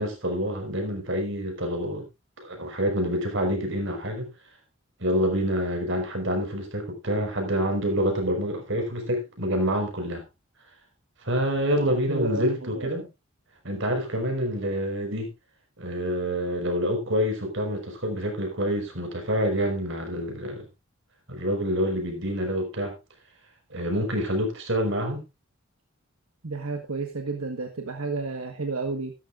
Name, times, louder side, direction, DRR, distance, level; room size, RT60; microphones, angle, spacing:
voice 1, 0.0-2.0 2.4-4.3 5.0-10.3 11.2-13.1 13.6-15.3 15.8-20.7 21.3-22.9 23.7-25.2, equal, 60° right, 5.2 m, -27 dB
voice 2, 11.8-13.0 26.4-29.1, right 3 dB, 90° right, 1.4 m, -32 dB
14.5 x 13.0 x 2.5 m
head